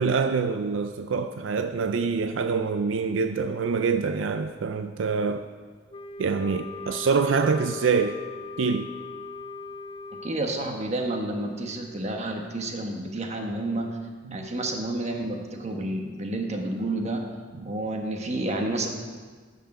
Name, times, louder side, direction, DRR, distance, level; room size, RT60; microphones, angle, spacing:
voice 1, 0.0-5.5 6.2-8.2 8.6-8.9 14.3-14.4 17.6-17.7, right 5 dB, 80° right, 0.4 m, -25 dB
Wind instrument woodwind instrument, 5.9-10.4, left 3 dB, 25° left, 0.5 m, -39 dB
voice 2, 10.1-14.0 14.3-17.2 17.6-18.9, right 2 dB, 35° right, 1.2 m, -30 dB
9.1 x 6.7 x 6.5 m
head